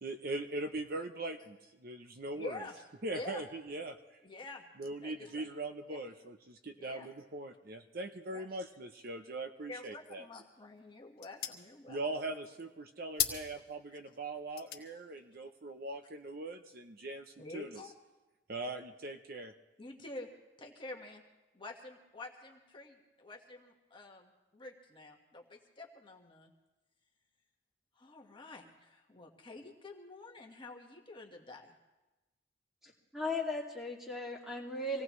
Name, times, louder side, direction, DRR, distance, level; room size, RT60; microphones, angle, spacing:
voice 1, 0.0-1.6 1.8-2.5 3.0-4.0 4.8-10.2 11.9-17.2 17.5-17.8 18.5-19.5, right 2 dB, 50° right, 6 dB, 0.7 m, -41 dB
voice 2, 2.3-2.8 3.1-3.4 4.2-4.7 5.0-5.4 5.9-6.0 6.8-7.1 8.3-8.5 9.7-12.2 13.9-14.0 15.2-15.3 17.4-18.0 19.8-20.3 20.6-21.2 21.5-26.5 27.9-31.8, left 2 dB, 25° left, 0 dB, 1.5 m, -48 dB
sound 1, 10.2-17.0, left 10 dB, 50° left, 1.5 m, -43 dB
voice 3, 32.8-35.0, left 2 dB, ahead, -2 dB, 2.3 m, -37 dB
25.5 x 17.5 x 3.1 m, 1.1 s
head